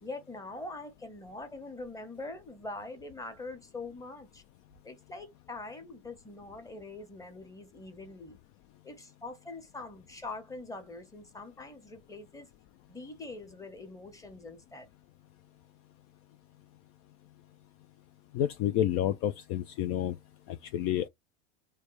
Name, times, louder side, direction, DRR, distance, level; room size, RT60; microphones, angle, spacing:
voice 1, 0.0-4.4 4.8-8.4 8.8-12.5 12.9-14.9, left 2 dB, 10° left, 1.0 m, -43 dB
voice 2, 18.3-20.1 20.7-21.1, left 11 dB, 45° left, 0.4 m, -29 dB
3.4 x 2.2 x 3.1 m
hypercardioid pair, 85°, 33 cm